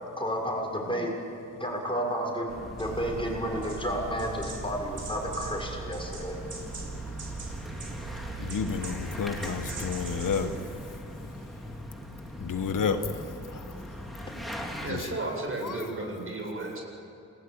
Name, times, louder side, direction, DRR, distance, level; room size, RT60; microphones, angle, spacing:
voice 1, 0.2-1.1 1.6-2.5 2.8-6.4, equal, 15° left, 0 dB, 6.7 m, -31 dB
sound 1, 2.5-14.9, equal, ahead, 4.0 m, -41 dB
sound 2, 2.8-10.6, right 4 dB, 65° right, 7.0 m, -39 dB
voice 2, 8.4-10.6 12.4-13.2 13.5-13.6 14.9-15.1 15.6-15.8, left 6 dB, 75° left, 7 dB, 1.6 m, -30 dB
voice 3, 14.8-16.8, right 2 dB, 40° right, 0 dB, 7.9 m, -33 dB
28.0 x 20.5 x 9.1 m, 3.0 s
cardioid pair, 90°, 32 cm